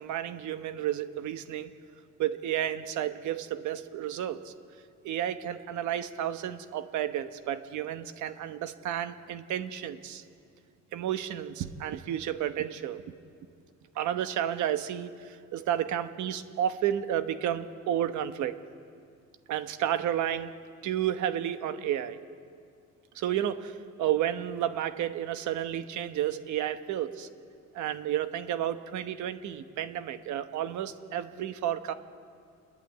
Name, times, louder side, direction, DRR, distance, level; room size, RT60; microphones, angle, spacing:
voice 1, 0.0-1.7 2.2-4.5 5.0-10.2 10.9-13.0 13.9-18.6 19.5-20.5 20.8-22.2 23.1-27.3 27.7-31.9, right 11 dB, 80° right, 10 dB, 1.1 m, -31 dB
28.5 x 11.0 x 9.3 m, 2.3 s
cardioid pair, 145°, 29 cm